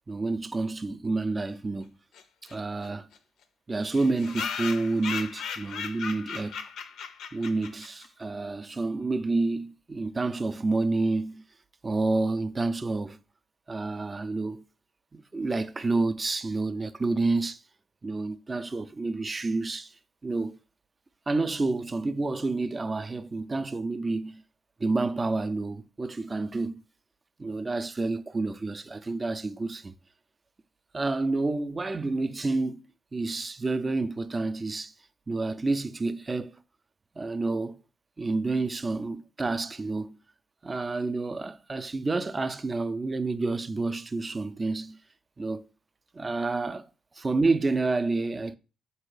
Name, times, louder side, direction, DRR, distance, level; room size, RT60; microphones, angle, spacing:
voice 1, 0.1-1.9 2.5-3.1 3.7-6.6 7.3-11.4 11.8-13.2 13.7-14.6 15.1-17.6 18.0-19.9 20.2-20.6 21.3-24.4 24.8-26.8 27.4-29.9 30.9-32.8 33.1-34.9 35.3-36.5 37.2-37.8 38.2-40.2 40.6-45.0 45.4-45.6 46.1-46.9 47.2-48.6, right 3 dB, 25° right, 0.4 m, -29 dB
sound 1, 2.1-2.2 2.5-2.6 2.8-2.9 3.1-3.2 3.8-8.1, left 6 dB, 75° left, 0.5 m, -36 dB
3.8 x 2.7 x 4.7 m
cardioid pair, 90°, 0 cm